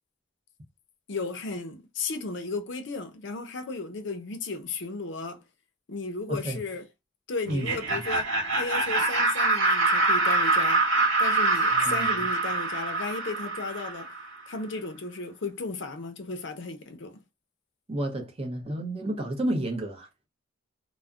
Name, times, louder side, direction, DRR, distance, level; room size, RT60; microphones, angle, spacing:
voice 1, 1.1-5.4 5.9-6.8 7.3-10.8 11.2-14.1 14.5-17.2, left 3 dB, 60° left, 0.5 m, -35 dB
voice 2, 6.3-6.6 7.5-8.0 11.7-12.3 17.9-20.1, right 1 dB, 30° right, 0.6 m, -31 dB
Laughter, 7.5-14.3, right 2 dB, 90° right, 1.1 m, -25 dB
2.3 x 2.1 x 3.5 m
head